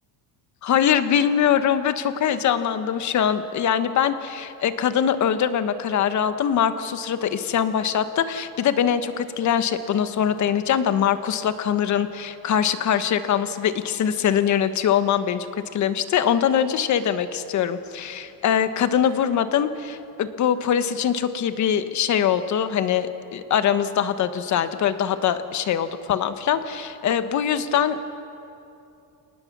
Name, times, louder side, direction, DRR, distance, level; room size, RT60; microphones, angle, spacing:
voice 1, 0.6-15.5 15.7-28.2, left 9 dB, 45° left, 10 dB, 1.3 m, -23 dB
28.5 x 19.0 x 6.1 m, 2.7 s
cardioid pair, 140°, 39 cm